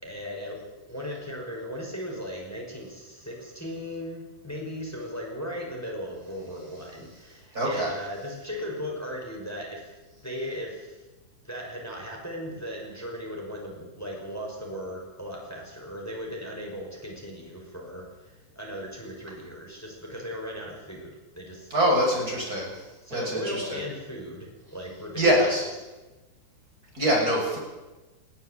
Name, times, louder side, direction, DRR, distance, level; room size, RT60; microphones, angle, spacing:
voice 1, 0.0-9.9 10.2-11.1 11.4-22.0 22.3-22.5 23.0-25.5, equal, 5° left, 0 dB, 4.8 m, -37 dB
voice 2, 7.5-7.9 21.7-22.7 23.1-23.8 25.1-25.6 26.9-27.6, equal, 20° right, -1 dB, 6.9 m, -24 dB
21.0 x 15.5 x 8.3 m, 1.1 s
omnidirectional pair, 5.2 m